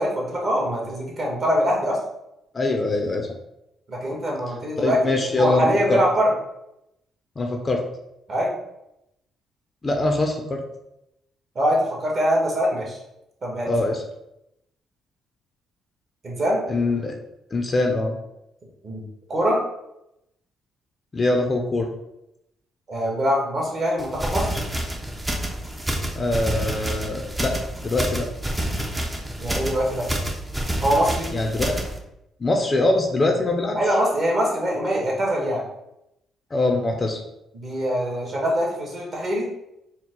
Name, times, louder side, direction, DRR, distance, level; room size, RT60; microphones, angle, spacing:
voice 1, 0.0-2.0 3.9-5.0 5.4-6.3 8.3-8.5 11.5-13.0 13.4-13.7 16.2-16.6 18.8-19.0 19.3-19.6 22.9-24.6 29.4-30.1 30.8-31.3 33.7-35.6 37.5-39.5, equal, 40° right, -2 dB, 1.6 m, -23 dB
voice 2, 2.5-3.3 4.8-6.0 7.4-7.8 9.8-10.6 13.6-14.0 16.7-17.2 17.5-18.1 21.1-21.9 26.1-28.3 31.3-31.7 32.4-33.8 36.5-37.2, left 2 dB, 30° left, 3 dB, 0.6 m, -23 dB
sound 1, 24.0-32.0, right 1 dB, 10° right, 0.7 m, -28 dB
4.4 x 2.2 x 4.5 m, 0.84 s
cardioid pair, 105°, 0 cm